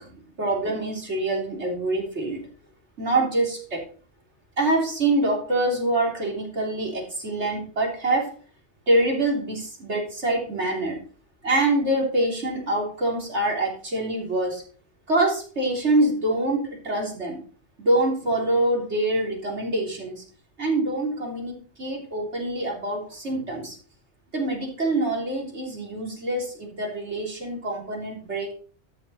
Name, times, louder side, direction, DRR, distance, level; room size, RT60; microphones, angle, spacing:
voice 1, 0.0-2.4 3.0-3.8 4.6-8.3 8.9-11.0 11.4-14.6 15.1-17.4 17.8-20.2 20.6-23.8 24.3-28.5, right 2 dB, 70° right, 0 dB, 3.7 m, -25 dB
13.0 x 6.1 x 4.2 m, 0.41 s
omnidirectional pair, 1.2 m